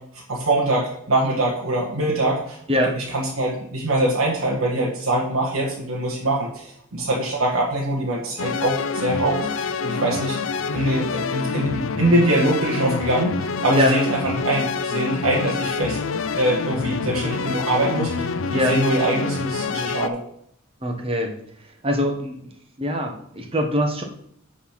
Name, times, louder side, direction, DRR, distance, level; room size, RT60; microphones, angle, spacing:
voice 1, 0.3-2.6 2.9-10.4 10.7-20.2, right 1 dB, 85° right, -4 dB, 1.6 m, -23 dB
sound 1, 8.4-20.1, left 4 dB, 70° left, 0.5 m, -27 dB
voice 2, 20.8-21.3 21.8-22.4 22.8-24.0, left 1 dB, 25° right, 3 dB, 1.2 m, -22 dB
8.8 x 4.2 x 5.8 m, 0.72 s
head